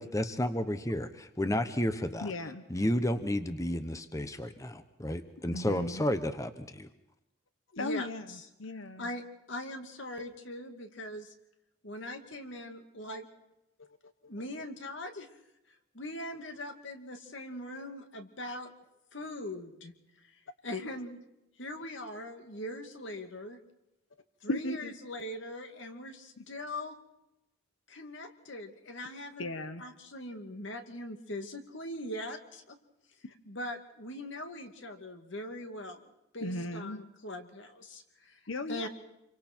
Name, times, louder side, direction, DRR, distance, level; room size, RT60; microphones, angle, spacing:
voice 1, 0.0-2.3 2.7-6.9, left 1 dB, 15° left, 10 dB, 1.0 m, -32 dB
voice 2, 2.2-2.7 5.5-6.1 7.8-9.1 24.5-24.9 26.4-26.5 29.4-29.8 33.2-33.3 36.4-37.0 38.5-38.9, left 2 dB, 90° left, 10 dB, 1.1 m, -36 dB
voice 3, 7.7-8.5 9.0-11.3 11.8-13.3 14.3-15.3 15.9-18.7 19.1-19.9 20.6-21.2 21.6-23.6 24.4-27.0 27.9-29.5 29.8-32.8 33.5-36.0 36.3-38.4 38.7-38.9, left 1 dB, 70° left, 5 dB, 2.4 m, -41 dB
28.0 x 24.0 x 4.5 m, 0.88 s
head